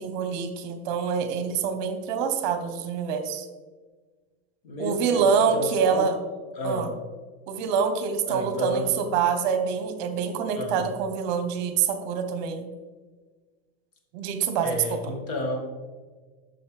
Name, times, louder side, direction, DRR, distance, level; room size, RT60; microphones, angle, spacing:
voice 1, 0.0-3.5 4.8-6.1 6.6-6.9 7.5-12.7 14.1-15.0, right 6 dB, 45° right, 8 dB, 0.9 m, -26 dB
voice 2, 4.6-5.3 5.5-6.1 6.6-6.9 8.3-8.9 10.6-10.9 14.6-15.6, left 2 dB, 60° left, 2 dB, 1.8 m, -31 dB
9.5 x 6.3 x 3.2 m, 1.4 s
supercardioid pair, 175°, 31 cm